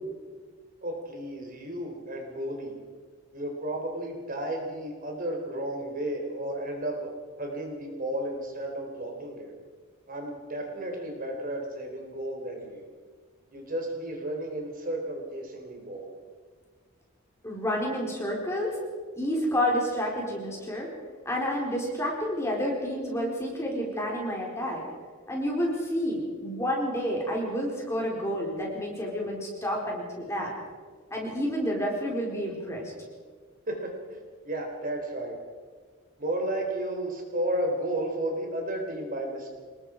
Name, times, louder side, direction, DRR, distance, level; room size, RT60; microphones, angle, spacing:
voice 1, 0.8-2.8 3.3-7.1 7.4-9.5 10.1-12.9 13.5-16.1 33.7-35.3 36.2-39.6, right 1 dB, 40° right, 2 dB, 3.8 m, -33 dB
voice 2, 17.4-18.7 19.2-20.9 21.2-24.8 25.3-30.5 31.1-32.9, equal, 15° left, -2 dB, 4.5 m, -29 dB
26.0 x 21.0 x 5.0 m, 1.5 s
head